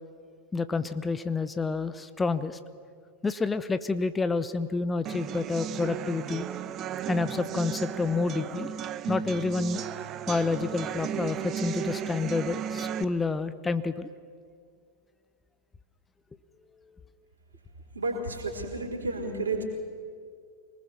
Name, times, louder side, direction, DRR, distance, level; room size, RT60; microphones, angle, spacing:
voice 1, 0.5-2.6 3.2-6.5 7.1-8.7 9.1-9.8 10.3-14.1, left 4 dB, 15° left, 13 dB, 0.8 m, -29 dB
sound 1, 5.1-13.0, right 8 dB, 30° right, 0.9 m, -35 dB
voice 2, 17.9-19.6, right 2 dB, 75° right, 2 dB, 4.1 m, -31 dB
25.5 x 19.5 x 7.1 m, 2.2 s
figure-of-eight pair, 90°, 0 cm